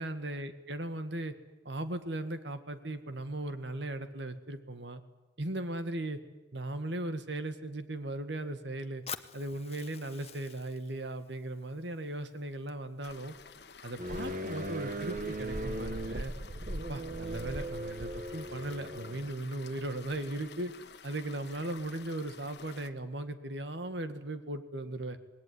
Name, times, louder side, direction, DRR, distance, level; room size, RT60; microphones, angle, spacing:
voice 1, 0.0-1.3 1.7-5.0 5.4-6.2 6.5-9.0 9.3-13.3 13.8-16.3 16.9-20.7 21.0-25.2, right 1 dB, 70° right, 10 dB, 1.9 m, -37 dB
Fire, 9.1-13.1, left 8 dB, 35° left, 1.0 m, -48 dB
sound 1, 13.0-22.9, left 5 dB, 65° left, 1.4 m, -51 dB
sound 2, 14.0-19.3, right 1 dB, 45° right, 1.3 m, -38 dB
26.5 x 20.0 x 9.7 m, 1.1 s
head